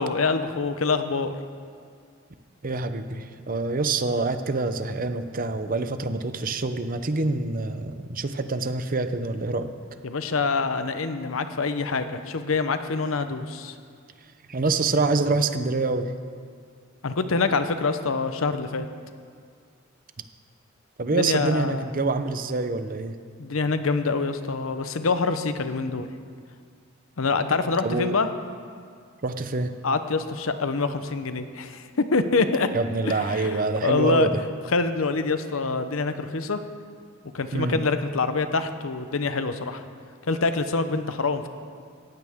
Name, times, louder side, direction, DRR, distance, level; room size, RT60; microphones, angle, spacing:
voice 1, 0.0-1.3 10.0-13.7 17.0-18.9 21.1-21.9 23.4-26.1 27.2-28.3 29.8-32.7 33.1-34.3 34.7-36.6 37.3-39.8 40.3-41.5, left 4 dB, 90° left, 10 dB, 0.8 m, -25 dB
voice 2, 2.6-9.7 14.5-16.1 21.0-23.2 27.8-28.2 29.2-29.7 32.7-34.4 37.5-37.8, right 3 dB, 45° right, 9 dB, 0.7 m, -26 dB
17.5 x 15.0 x 3.6 m, 2.2 s
head